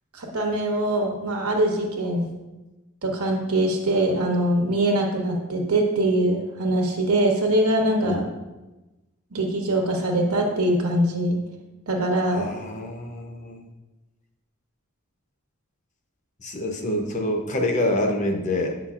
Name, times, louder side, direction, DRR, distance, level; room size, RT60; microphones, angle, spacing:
voice 1, 0.1-2.3 3.0-8.2 9.3-11.4 11.9-12.5, right 1 dB, 85° right, 1 dB, 1.1 m, -23 dB
voice 2, 12.3-13.7 16.4-18.8, left 1 dB, 35° left, 3 dB, 0.6 m, -26 dB
8.3 x 5.8 x 2.4 m, 1.1 s
head